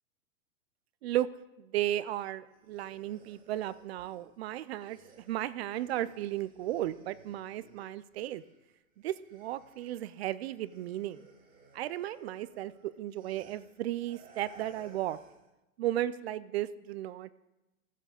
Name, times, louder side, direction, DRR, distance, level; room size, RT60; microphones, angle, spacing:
voice 1, 1.6-8.4 9.0-11.3 11.7-15.2 15.8-17.3, right 13 dB, 50° right, 16 dB, 0.5 m, -35 dB
sound 1, 2.5-8.7 9.0-15.5, right 4 dB, 20° right, 2.0 m, -60 dB
13.5 x 7.5 x 5.1 m, 1.0 s
hypercardioid pair, 145°, 42 cm